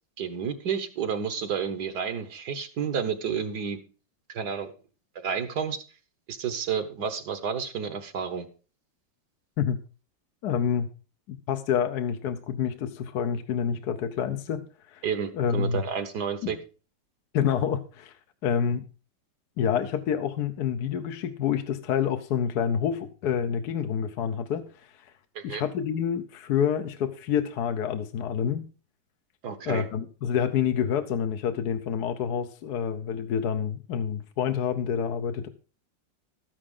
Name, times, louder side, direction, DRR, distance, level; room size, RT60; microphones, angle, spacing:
voice 1, 0.2-3.8 4.3-4.7 5.1-5.8 6.3-8.5 15.0-16.6 25.3-25.6 29.4-29.9, right 7 dB, 60° right, 9 dB, 1.6 m, -30 dB
voice 2, 10.4-10.9 11.3-15.0 15.3-15.8 16.4-16.5 17.3-18.1 18.4-18.8 19.6-25.1 25.4-28.6 29.7-35.5, left 8 dB, 65° left, 7 dB, 1.2 m, -28 dB
13.0 x 9.9 x 3.7 m, 0.34 s
omnidirectional pair, 2.0 m